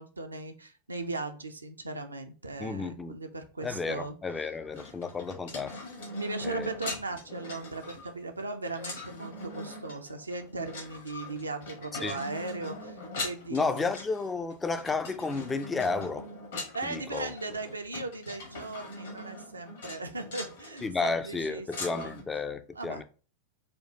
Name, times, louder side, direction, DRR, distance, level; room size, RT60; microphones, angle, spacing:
voice 1, 0.0-4.8 6.1-14.0 16.7-22.2 22.7-23.0, right 3 dB, 80° right, 0.5 m, -38 dB
voice 2, 2.6-3.2 3.6-5.8 6.4-6.7 12.0-12.2 13.5-16.3 16.8-17.3 20.8-23.0, left 4 dB, 15° left, 0.3 m, -32 dB
sound 1, 4.7-22.2, left 2 dB, 65° left, 1.3 m, -42 dB
4.3 x 2.2 x 2.7 m
figure-of-eight pair, 90°, 0 cm